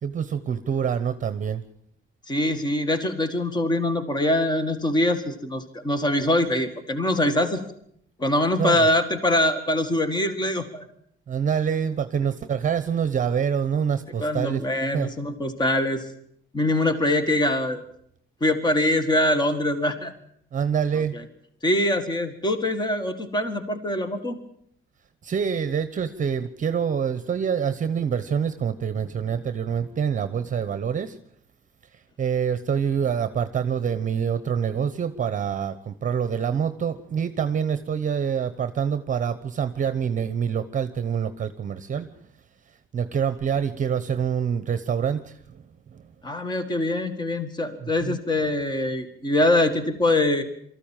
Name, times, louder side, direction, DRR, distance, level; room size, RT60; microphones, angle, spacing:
voice 1, 0.0-1.6 8.6-8.9 11.3-14.6 14.9-15.1 20.5-21.2 25.2-31.2 31.9-42.2 42.9-46.1 47.8-48.2, right 7 dB, 40° right, 12 dB, 1.0 m, -26 dB
voice 2, 2.3-7.6 8.2-10.9 14.2-16.1 16.5-17.8 18.4-20.1 21.1-21.2 21.6-24.4 46.2-50.4, left 1 dB, 20° left, 9 dB, 1.9 m, -23 dB
24.0 x 14.5 x 9.1 m, 0.70 s
cardioid pair, 150°, 21 cm